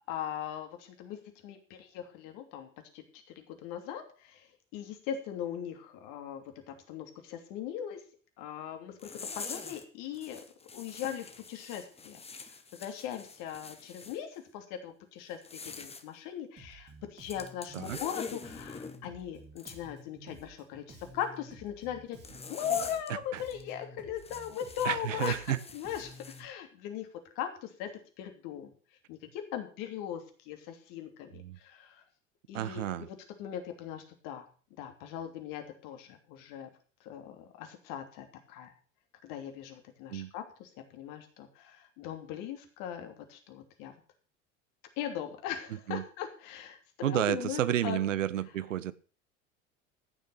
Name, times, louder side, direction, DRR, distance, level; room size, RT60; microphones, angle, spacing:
voice 1, 0.1-1.2 1.4-4.5 4.7-8.0 8.4-10.4 10.7-26.1 26.4-27.1 27.3-27.9 28.2-28.7 29.1-32.0 32.5-34.5 34.8-36.7 37.0-38.7 39.2-43.9 45.0-48.0, left 9 dB, 55° left, 5 dB, 3.0 m, -39 dB
sound 1, 9.0-9.8 10.1-14.2 15.3-16.0 17.3-19.0 19.6-19.8 22.2-23.1 23.5-23.6 24.2-26.4, left 4 dB, 15° left, 1.4 m, -45 dB
Bass guitar, 16.6-26.5, right 2 dB, 25° right, 3.0 m, -52 dB
voice 2, 24.8-25.6 31.3-31.6 32.5-33.1 40.1-40.3 45.9-46.0 47.0-48.9, right 11 dB, 80° right, 17 dB, 0.8 m, -31 dB
15.0 x 6.8 x 6.7 m, 0.39 s
figure-of-eight pair, 75°, 38 cm